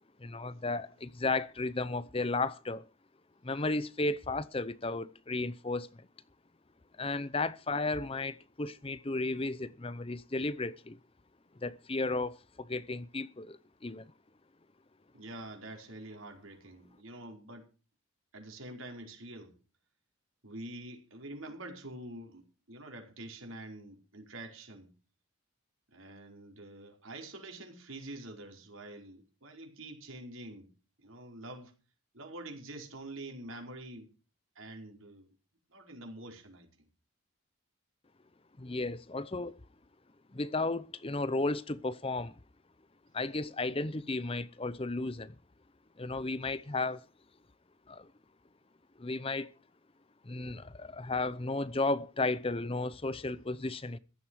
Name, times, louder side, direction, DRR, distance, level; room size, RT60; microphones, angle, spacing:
voice 1, 0.2-2.9 3.4-5.9 7.0-11.0 11.6-14.1 38.6-39.6 40.3-42.4 43.1-45.3 46.0-47.0 47.9-48.1 49.0-49.5 50.2-54.0, left 3 dB, 25° left, 0.7 m, -34 dB
voice 2, 15.1-17.6 18.3-19.5 20.4-24.9 25.9-30.7 31.0-31.7 32.1-34.1 34.5-35.3 35.7-36.7, right 1 dB, 75° right, 4.9 m, -46 dB
15.5 x 13.0 x 4.7 m
head